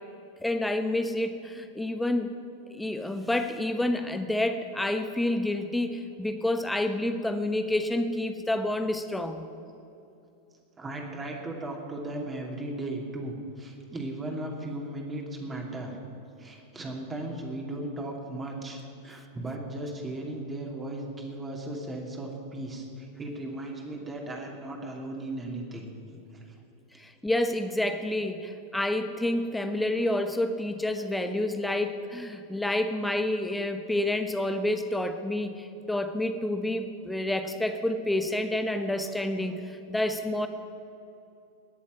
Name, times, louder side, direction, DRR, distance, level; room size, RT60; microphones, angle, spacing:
voice 1, 0.4-2.4 2.7-9.5 27.0-40.5, left 1 dB, 5° left, 7 dB, 1.1 m, -29 dB
voice 2, 10.8-16.0 16.4-26.5, right 1 dB, 15° right, 0 dB, 2.6 m, -36 dB
19.5 x 7.1 x 9.6 m, 2.8 s
figure-of-eight pair, 90°, 0 cm